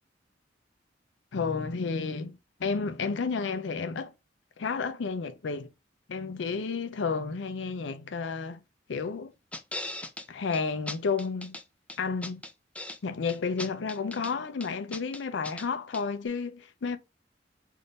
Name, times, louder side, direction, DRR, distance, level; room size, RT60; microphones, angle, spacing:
voice 1, 1.3-4.1 4.6-5.7 6.1-8.6 8.9-9.3 10.3-11.6 12.0-12.4 13.0-17.0, left 5 dB, 75° left, 0.5 m, -31 dB
sound 1, 9.5-10.3 10.5-10.6 10.9-11.6 11.9-13.0 13.3-14.3 14.6-15.7 15.9-16.0, left 2 dB, 5° left, 0.4 m, -38 dB
3.6 x 2.6 x 3.9 m
head